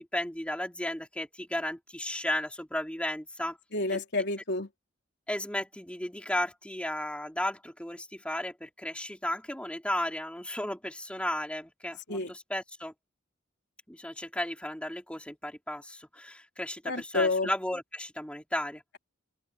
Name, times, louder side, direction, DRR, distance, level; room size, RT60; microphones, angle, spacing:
voice 1, 0.0-3.6 3.9-4.0 5.3-12.9 13.9-18.8, left 1 dB, 5° left, 4.4 m, -34 dB
voice 2, 3.7-4.7 12.1-12.3 16.9-17.5, left 3 dB, 60° left, 3.6 m, -29 dB
open air
head